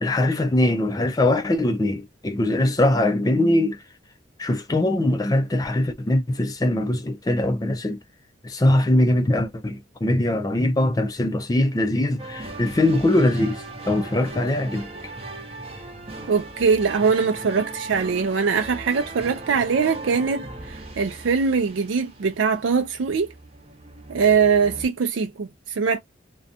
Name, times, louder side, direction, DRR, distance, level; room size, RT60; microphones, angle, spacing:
voice 1, 0.0-3.8 4.4-8.0 8.4-15.1, left 1 dB, 20° left, 0.4 m, -22 dB
sound 1, 12.2-24.9, right 2 dB, 30° right, 0.7 m, -38 dB
voice 2, 16.3-23.3 24.1-26.0, right 5 dB, 80° right, 0.4 m, -22 dB
2.5 x 2.2 x 2.6 m
head